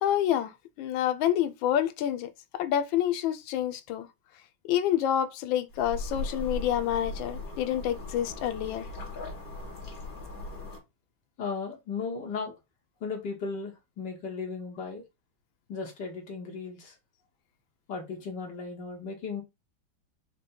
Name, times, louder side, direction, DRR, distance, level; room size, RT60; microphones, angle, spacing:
voice 1, 0.0-4.1 4.7-8.9, left 11 dB, 85° left, 1.4 m, -28 dB
sound 1, 5.7-10.8, left 2 dB, 50° left, 2.0 m, -38 dB
voice 2, 11.4-12.5 13.0-15.0 15.7-17.0 17.9-19.4, left 4 dB, 65° left, 1.9 m, -36 dB
5.2 x 2.2 x 4.2 m
omnidirectional pair, 2.1 m